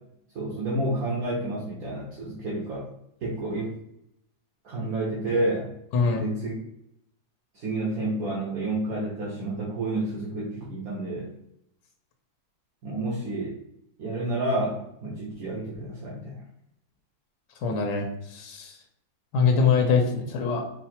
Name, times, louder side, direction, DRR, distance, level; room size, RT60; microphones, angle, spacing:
voice 1, 0.3-2.9 3.2-3.7 4.6-5.7 6.2-6.5 7.5-11.3 12.8-13.6 14.0-16.4, right 2 dB, 65° right, -6 dB, 1.4 m, -30 dB
voice 2, 5.9-6.2 17.6-18.7 19.3-20.7, left 5 dB, 90° left, 3 dB, 1.3 m, -23 dB
4.7 x 2.1 x 4.3 m, 0.77 s
omnidirectional pair, 1.7 m